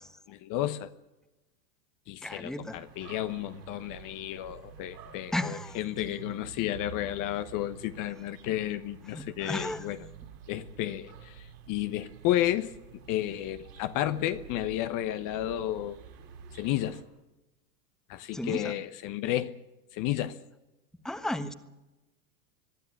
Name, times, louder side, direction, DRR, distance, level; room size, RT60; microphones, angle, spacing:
voice 1, 0.3-0.9 2.1-10.0 10.5-12.7 13.1-16.0 16.6-17.0 18.1-19.5 19.9-20.4, left 13 dB, 40° left, 1.1 m, -32 dB
voice 2, 2.2-2.8 5.3-5.8 9.1-9.9 18.3-18.7 21.0-21.5, left 1 dB, ahead, 1.3 m, -34 dB
sound 1, 2.7-17.0, right 6 dB, 80° right, 6.0 m, -49 dB
22.0 x 12.5 x 9.9 m
hypercardioid pair, 110°, 49 cm